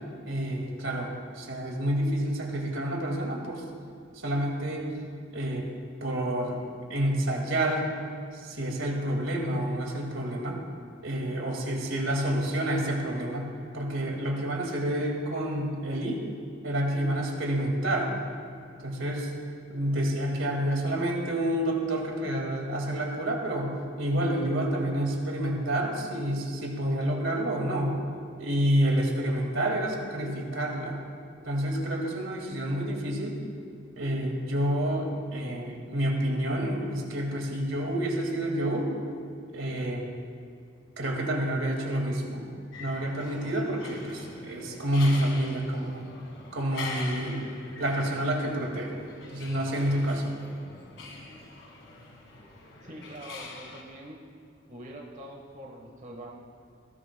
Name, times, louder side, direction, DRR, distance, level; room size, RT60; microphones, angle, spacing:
voice 1, 0.2-3.6 4.2-4.9 5.3-5.7 6.0-6.6 6.9-7.9 8.3-10.6 11.0-16.2 16.6-18.1 18.8-19.3 19.7-27.9 28.4-31.0 31.4-33.4 34.0-38.9 39.5-40.1 41.0-42.5 42.8-46.0 46.5-47.4 47.8-48.9 49.3-50.4, right 1 dB, 80° right, 0 dB, 2.0 m, -28 dB
sound 1, 42.7-53.8, left 3 dB, 70° left, 1.8 m, -43 dB
voice 2, 52.8-54.2 54.7-56.4, right 1 dB, 40° right, -1 dB, 1.3 m, -44 dB
19.5 x 14.5 x 2.2 m, 2.3 s
head